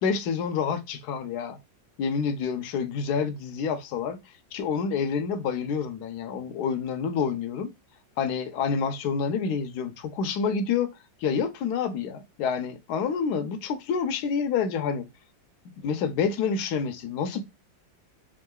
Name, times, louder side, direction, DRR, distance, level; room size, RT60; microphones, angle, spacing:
voice 1, 0.0-1.6 2.0-4.2 4.5-7.7 8.2-10.9 11.2-15.0 15.8-17.4, left 6 dB, 70° left, 1.1 m, -28 dB
3.7 x 3.7 x 2.3 m
omnidirectional pair, 2.1 m